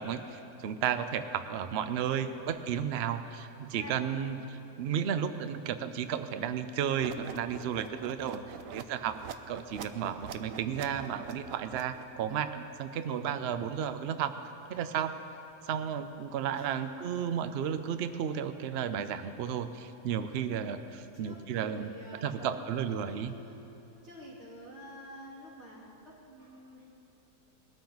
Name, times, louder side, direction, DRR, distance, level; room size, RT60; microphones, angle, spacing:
voice 1, 0.0-9.2 9.5-14.3 14.7-15.1 15.6-21.9 22.2-23.3, right 8 dB, 85° right, 10 dB, 0.5 m, -33 dB
voice 2, 2.1-2.7 3.7-4.4 8.6-8.8 16.5-17.0 17.3-17.5 21.1-23.6 24.0-26.9, equal, 40° right, -5 dB, 3.3 m, -49 dB
sound 1, 7.0-12.2, right 7 dB, 65° right, 0.9 m, -45 dB
20.5 x 13.0 x 4.0 m, 2.8 s
omnidirectional pair, 1.8 m